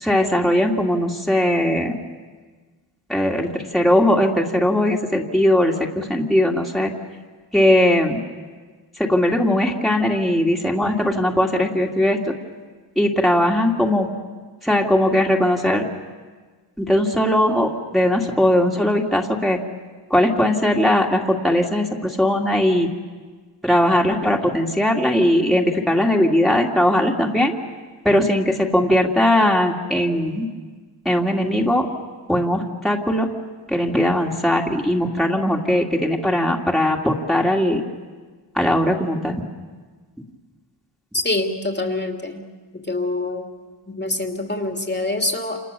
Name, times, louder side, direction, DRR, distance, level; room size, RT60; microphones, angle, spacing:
voice 1, 0.0-2.0 3.1-6.9 7.5-8.2 9.0-12.2 13.0-14.1 14.6-15.8 16.8-19.6 20.1-22.9 23.6-27.5 28.0-30.5 31.1-31.9 32.3-33.3 33.7-37.8 38.6-39.4, left 1 dB, ahead, 0 dB, 2.5 m, -19 dB
voice 2, 41.1-42.4 42.8-43.4 43.9-45.6, left 2 dB, 25° left, 3 dB, 2.4 m, -25 dB
29.0 x 28.5 x 7.0 m, 1.4 s
wide cardioid pair, 90°, 46 cm